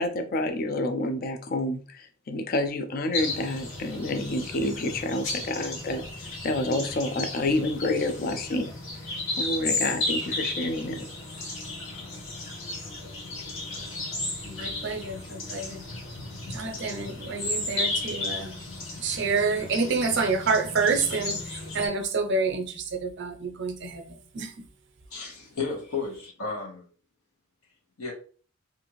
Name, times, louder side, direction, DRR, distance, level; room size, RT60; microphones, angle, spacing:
voice 1, 0.0-8.7 9.4-11.1, left 2 dB, 40° left, 0.3 m, -29 dB
sound 1, 3.1-21.9, left 2 dB, 65° left, 1.0 m, -34 dB
voice 2, 14.4-15.8 16.5-18.5 19.0-24.5, right 4 dB, 55° right, 0.5 m, -28 dB
voice 3, 25.1-26.8 28.0-28.1, left 4 dB, 90° left, 1.1 m, -33 dB
2.6 x 2.4 x 2.9 m
head